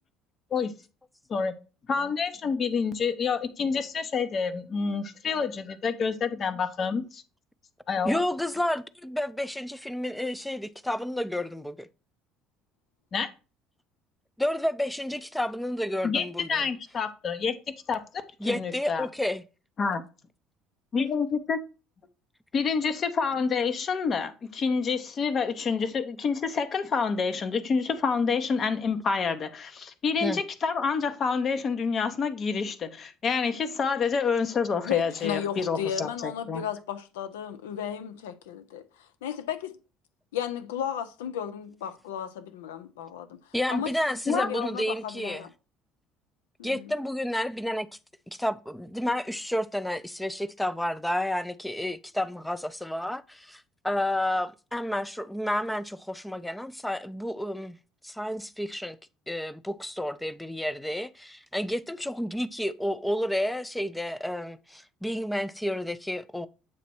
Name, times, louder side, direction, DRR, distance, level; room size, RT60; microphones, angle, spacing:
voice 1, 1.9-7.2 7.9-8.2 13.1-13.3 16.0-17.6 17.9-18.0 18.4-19.1 19.8-20.0 20.9-21.6 22.5-36.6 44.3-44.5, left 5 dB, 45° left, 0.7 m, -28 dB
voice 2, 8.0-11.9 14.4-16.6 18.4-19.4 30.2-30.4 43.5-45.4 46.6-47.9 48.3-57.8 58.0-59.0 59.3-66.5, left 1 dB, 5° left, 0.4 m, -30 dB
voice 3, 34.8-39.7 40.3-43.4 43.7-43.9 44.3-45.5 46.6-46.9, left 9 dB, 80° left, 0.5 m, -34 dB
7.3 x 3.0 x 4.3 m
hypercardioid pair, 60°, 0 cm